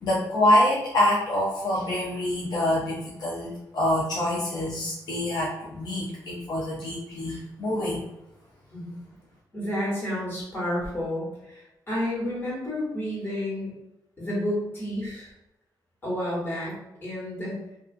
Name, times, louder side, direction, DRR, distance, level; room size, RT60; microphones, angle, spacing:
voice 1, 0.0-8.0, left 1 dB, 70° left, -4 dB, 0.5 m, -26 dB
voice 2, 8.7-9.1 9.5-13.7 14.2-15.3 16.0-16.7 17.0-17.6, left 1 dB, 30° left, -7 dB, 1.4 m, -30 dB
2.4 x 2.3 x 2.5 m, 0.89 s
wide cardioid pair, 125°, 7 cm